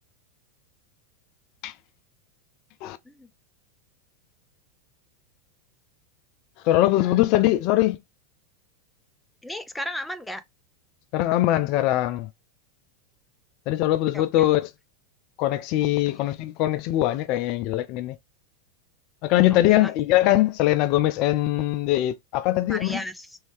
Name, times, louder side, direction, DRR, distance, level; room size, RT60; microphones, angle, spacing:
voice 1, 6.6-8.0 11.1-12.3 13.7-14.7 15.4-18.2 19.2-23.0, left 15 dB, 50° left, 0.3 m, -22 dB
voice 2, 9.4-10.4 14.1-14.2 16.1-16.2 19.7-19.9 22.7-23.4, equal, 5° left, 0.6 m, -34 dB
3.1 x 2.8 x 3.1 m
hypercardioid pair, 95°, 0 cm